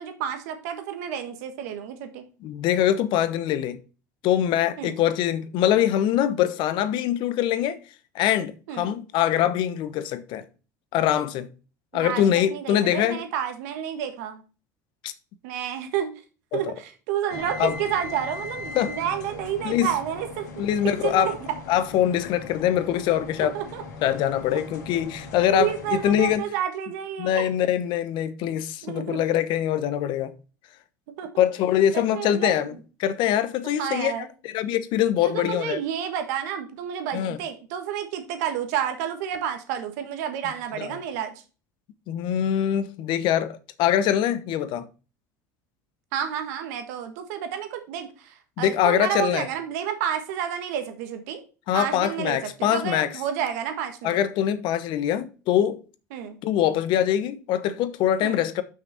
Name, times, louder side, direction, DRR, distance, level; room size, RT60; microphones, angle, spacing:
voice 1, 0.0-2.2 4.8-4.9 8.7-8.9 11.9-12.2 12.5-14.4 15.4-16.1 16.5-20.7 21.0-21.4 23.4-23.8 24.5-24.6 25.5-27.5 28.8-29.2 31.2-31.4 31.9-32.7 33.8-34.3 35.2-41.3 46.1-51.4 51.7-54.2 56.1-56.4 58.2-58.4, right 9 dB, 70° right, 1.6 m, -30 dB
voice 2, 2.4-3.8 4.2-7.8 8.1-10.4 10.9-11.5 11.9-13.2 15.0-15.1 16.5-16.7 17.6-17.8 18.7-18.9 19.6-19.9 20.6-21.3 21.7-23.6 24.0-26.5 27.2-30.3 31.4-34.1 34.4-35.8 37.1-37.4 40.8-40.9 42.1-44.9 48.6-49.5 51.7-53.1 54.0-55.8 56.4-58.6, left 11 dB, 60° left, 1.0 m, -23 dB
sound 1, 17.3-26.4, left 3 dB, 80° left, 2.2 m, -39 dB
6.0 x 5.9 x 5.7 m
hypercardioid pair, 80°, 9 cm